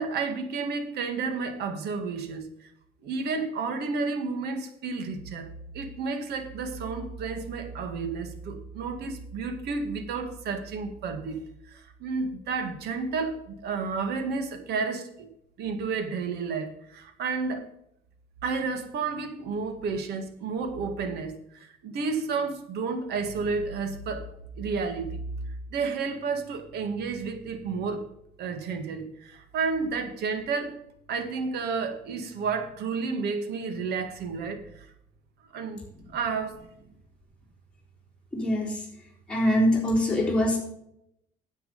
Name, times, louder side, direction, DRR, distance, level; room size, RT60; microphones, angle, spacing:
voice 1, 0.0-2.7 3.0-5.5 5.7-11.4 11.7-15.3 15.6-17.7 18.4-24.3 24.6-25.2 25.7-28.1 28.4-30.8 31.1-34.9 35.5-35.8 36.1-36.5, right 4 dB, 75° right, 7 dB, 2.0 m, -31 dB
voice 2, 38.3-38.9 39.3-40.6, left 1 dB, 5° left, -5 dB, 3.8 m, -23 dB
10.0 x 7.8 x 5.4 m, 0.76 s
cardioid pair, 110°, 17 cm